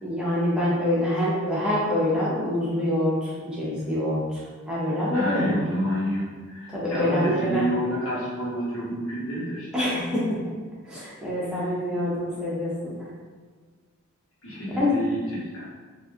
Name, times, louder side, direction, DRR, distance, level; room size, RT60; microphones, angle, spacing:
voice 1, 0.0-5.6 6.7-7.7 9.7-10.4 10.8-13.0 14.8-14.9, left 1 dB, 5° right, -8 dB, 0.8 m, -26 dB
voice 2, 5.1-9.7 12.3-12.4 14.4-15.7, equal, 75° left, -8 dB, 1.3 m, -29 dB
3.1 x 2.6 x 3.6 m, 1.5 s
head